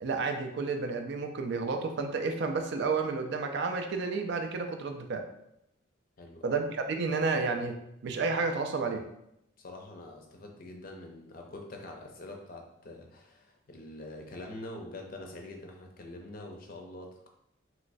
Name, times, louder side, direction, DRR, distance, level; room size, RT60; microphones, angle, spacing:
voice 1, 0.0-5.3 6.4-7.8 8.0-9.0, right 4 dB, 55° right, 5 dB, 0.3 m, -31 dB
voice 2, 9.6-17.3, left 2 dB, 45° left, 2 dB, 0.5 m, -45 dB
3.1 x 3.0 x 2.6 m, 0.80 s
head